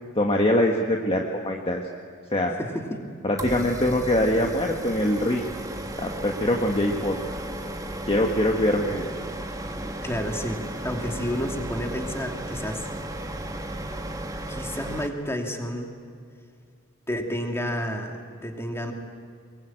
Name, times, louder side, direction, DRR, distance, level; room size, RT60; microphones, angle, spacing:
voice 1, 0.1-1.8 2.3-2.5 3.2-5.5 6.0-7.2 8.1-9.1, left 1 dB, 30° left, 1 dB, 1.5 m, -23 dB
voice 2, 2.6-3.1 3.6-3.7 9.7-12.9 14.5-15.9 17.1-18.9, equal, 10° left, 2 dB, 2.7 m, -31 dB
sound 1, 3.4-15.1, right 1 dB, 15° right, 1.7 m, -34 dB
23.5 x 22.5 x 8.9 m, 2.3 s
head